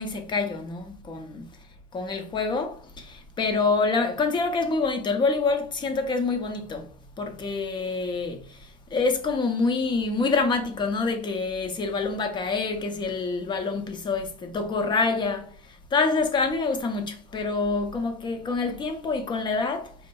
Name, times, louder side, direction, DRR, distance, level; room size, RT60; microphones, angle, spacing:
voice 1, 0.0-1.5 1.9-19.9, left 4 dB, 20° left, 0.6 m, -27 dB
4.2 x 2.5 x 2.3 m
hypercardioid pair, 90°, 21 cm